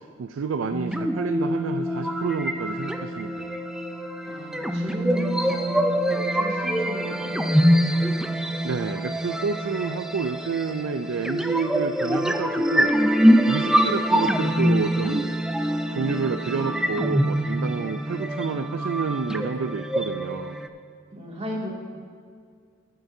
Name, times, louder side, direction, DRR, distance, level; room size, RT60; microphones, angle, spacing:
voice 1, 0.0-3.6 8.6-12.9 13.5-15.4 15.9-20.6, right 5 dB, 85° right, 9 dB, 0.4 m, -29 dB
sound 1, 0.7-20.7, equal, 5° right, 0.4 m, -24 dB
voice 2, 4.2-8.1 21.1-21.7, equal, 35° right, -4 dB, 2.4 m, -36 dB
21.5 x 7.8 x 2.7 m, 2.2 s
head